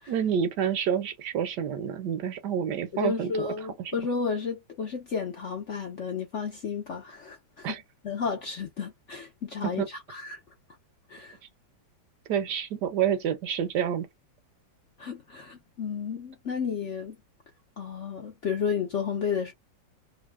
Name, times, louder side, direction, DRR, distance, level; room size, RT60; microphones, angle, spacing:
voice 1, 0.1-3.5 7.6-7.8 9.6-9.9 12.3-14.1, right 8 dB, 75° right, 1.1 m, -28 dB
voice 2, 2.9-7.7 8.0-10.4 11.1-11.4 15.0-17.2 17.8-19.5, left 6 dB, 55° left, 0.8 m, -32 dB
3.0 x 2.1 x 3.2 m
omnidirectional pair, 2.0 m